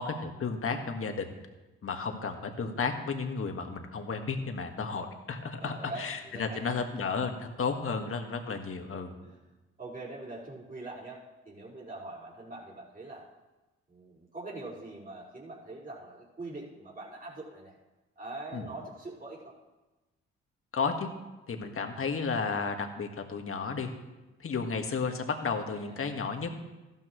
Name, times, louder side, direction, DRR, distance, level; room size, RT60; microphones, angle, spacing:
voice 1, 0.0-1.3 1.8-9.1 18.5-18.7 20.7-21.1 21.5-23.9 24.4-26.5, left 5 dB, 50° left, 5 dB, 1.8 m, -33 dB
voice 2, 5.6-6.8 9.2-9.4 9.8-11.2 11.5-13.2 13.9-17.7 18.2-19.5 25.7-26.0, right 2 dB, 30° right, -5 dB, 5.1 m, -43 dB
14.5 x 12.5 x 3.2 m, 1.1 s
supercardioid pair, 50°, 29 cm